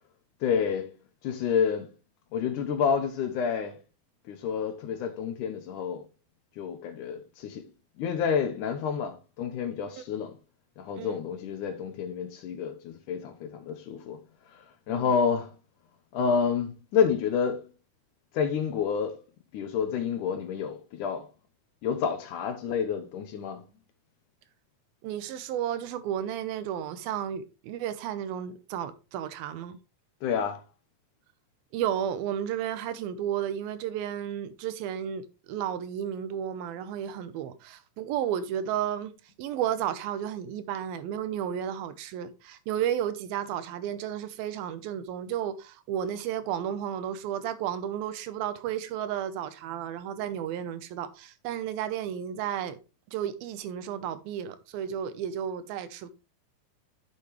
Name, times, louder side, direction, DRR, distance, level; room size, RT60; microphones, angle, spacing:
voice 1, 0.4-0.9 1.2-1.9 2.3-3.8 4.3-6.0 6.6-7.7 8.0-10.4 10.8-14.2 14.5-15.5 16.1-17.6 18.3-19.2 19.5-21.3 21.8-23.6 30.2-30.6, left 6 dB, 70° left, 2.1 m, -29 dB
voice 2, 25.0-29.8 31.7-39.1 39.4-52.8 53.1-56.1, right 10 dB, 85° right, 2.6 m, -33 dB
9.6 x 7.2 x 3.1 m
omnidirectional pair, 4.3 m